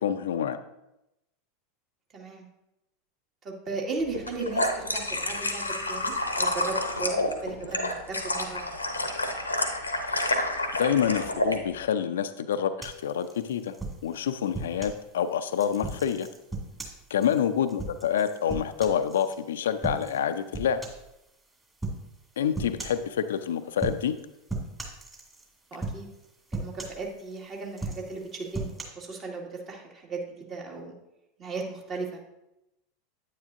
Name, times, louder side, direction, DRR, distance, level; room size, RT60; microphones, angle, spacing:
voice 1, 0.0-0.6 10.8-13.7 14.0-16.3 17.1-20.8 22.4-24.2, left 8 dB, 70° left, 10 dB, 0.5 m, -27 dB
voice 2, 2.1-2.4 3.4-8.7 25.7-26.1 26.5-30.9 31.4-32.2, right 3 dB, 35° right, -1 dB, 2.1 m, -36 dB
sound 1, 4.1-11.6, left 1 dB, 90° left, 0.8 m, -29 dB
sound 2, 12.8-15.0 15.5-19.4 19.8-20.2 20.5-21.1 21.8-22.0 22.5-23.1 23.7-24.2 24.5-25.5 25.8-26.2 26.5-27.4 27.7-28.8, right 3 dB, 15° right, 2.2 m, -36 dB
9.4 x 9.3 x 2.6 m, 0.89 s
figure-of-eight pair, 85°, 0 cm